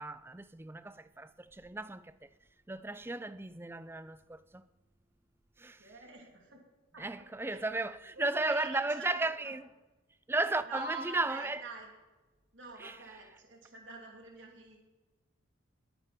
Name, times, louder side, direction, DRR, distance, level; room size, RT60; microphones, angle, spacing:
voice 1, 0.0-2.3 2.7-4.6 5.6-5.9 7.0-9.7 10.3-11.6 12.8-13.0, right 2 dB, 10° right, 0.4 m, -35 dB
voice 2, 5.8-6.6 6.9-7.1 7.5-7.6 8.2-9.5 10.7-11.9 12.5-14.8, right 3 dB, 60° right, 2.9 m, -47 dB
20.5 x 10.0 x 4.2 m
head